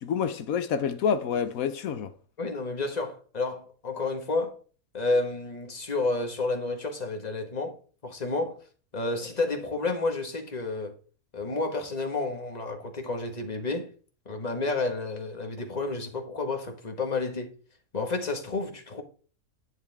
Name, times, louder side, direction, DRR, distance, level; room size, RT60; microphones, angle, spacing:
voice 1, 0.0-2.1, left 7 dB, 85° left, 1.2 m, -28 dB
voice 2, 2.4-4.6 4.9-7.8 8.0-8.6 8.9-10.9 11.3-13.9 14.3-17.5 17.9-19.0, left 3 dB, 30° left, 1.7 m, -30 dB
10.5 x 9.7 x 3.5 m
omnidirectional pair, 1.4 m